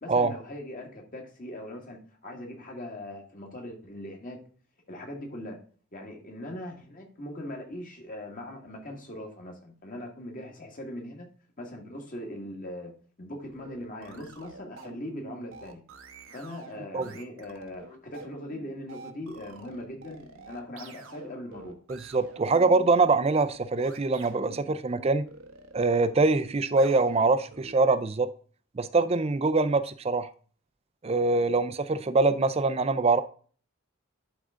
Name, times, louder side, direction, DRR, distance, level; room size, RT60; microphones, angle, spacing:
voice 1, 0.0-4.4 4.9-5.6 5.9-11.3 11.6-12.9 13.2-15.8 16.3-21.8 31.3-31.5, left 1 dB, 40° left, 1.8 m, -40 dB
sound 1, 13.4-27.9, right 4 dB, 75° right, 1.0 m, -47 dB
voice 2, 21.9-25.3 25.7-28.3 28.7-30.3 31.0-33.2, right 3 dB, 30° right, 0.4 m, -24 dB
11.5 x 3.8 x 3.6 m
head